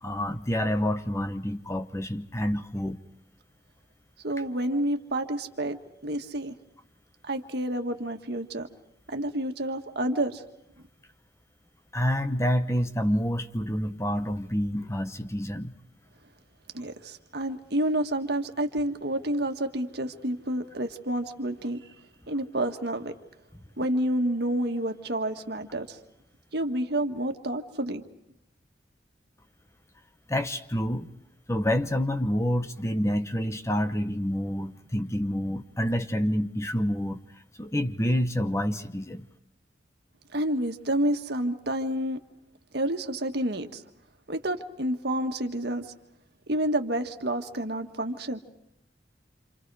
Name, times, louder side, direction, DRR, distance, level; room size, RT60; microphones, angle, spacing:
voice 1, 0.0-3.0 11.9-15.7 30.3-31.1 31.5-37.2 37.6-39.3, equal, 15° left, 9 dB, 1.0 m, -28 dB
voice 2, 4.2-5.8 6.0-6.5 7.3-8.7 9.1-10.4 16.7-21.8 22.3-23.1 23.8-26.0 26.5-28.0 40.3-42.2 42.7-43.8 44.3-45.9 46.5-48.4, right 1 dB, 65° right, 6 dB, 1.7 m, -29 dB
28.0 x 27.5 x 4.8 m, 0.78 s
head